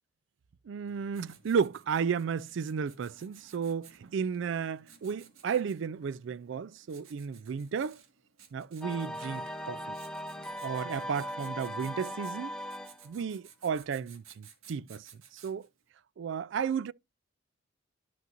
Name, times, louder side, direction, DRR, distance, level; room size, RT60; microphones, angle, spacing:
voice 1, 0.7-8.0 8.5-10.0 10.6-12.5 13.0-15.7 16.2-16.9, right 6 dB, 60° right, 0.3 m, -33 dB
Writing, 0.9-15.8, right 7 dB, 85° right, 1.7 m, -58 dB
sound 1, 8.8-13.1, equal, 5° left, 0.6 m, -39 dB
12.0 x 5.5 x 2.5 m
head